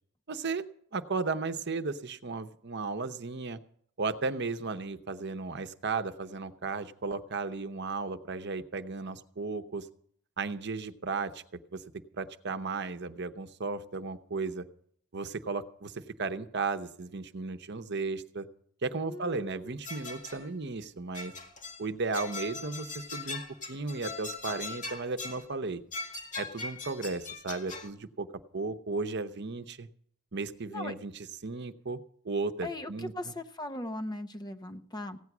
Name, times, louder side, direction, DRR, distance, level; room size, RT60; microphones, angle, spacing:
voice 1, 0.3-0.6 0.9-3.6 4.0-9.9 10.4-11.8 12.1-14.7 15.1-18.5 18.8-21.3 21.8-23.4 23.7-25.8 26.4-28.3 28.5-29.9 30.3-32.0 32.2-33.1, right 3 dB, 55° right, 9 dB, 0.9 m, -35 dB
voice 2, 19.0-19.8 30.7-30.9 32.6-35.2, left 1 dB, 20° left, 8 dB, 0.8 m, -39 dB
sound 1, 19.8-20.5 21.1-21.9 22.1-25.5 25.9-27.9, left 3 dB, 40° left, 2.0 m, -40 dB
16.0 x 9.5 x 6.1 m, 0.62 s
head